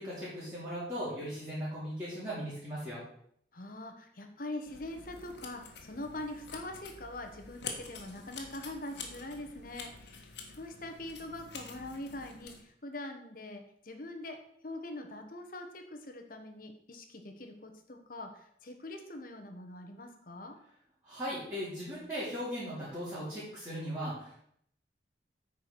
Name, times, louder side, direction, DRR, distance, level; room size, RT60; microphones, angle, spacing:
voice 1, 0.0-3.0 21.0-24.4, equal, 15° right, -11 dB, 3.4 m, -38 dB
voice 2, 3.5-14.4 14.6-20.6, left 1 dB, 50° left, 5 dB, 1.2 m, -43 dB
sound 1, 4.6-12.6, left 5 dB, 65° left, 1.6 m, -47 dB
8.9 x 4.9 x 6.2 m, 0.69 s
head